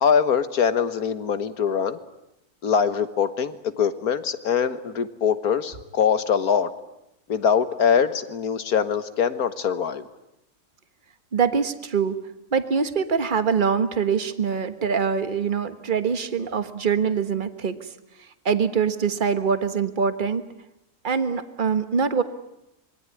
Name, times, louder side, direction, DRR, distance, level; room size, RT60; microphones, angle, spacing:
voice 1, 0.0-2.0 2.6-6.7 7.3-10.1, left 7 dB, 80° left, 11 dB, 1.9 m, -23 dB
voice 2, 11.3-12.2 12.5-17.8 18.4-20.4 21.0-22.2, right 6 dB, 35° right, 10 dB, 1.5 m, -24 dB
26.5 x 22.0 x 9.8 m, 0.88 s
omnidirectional pair, 1.6 m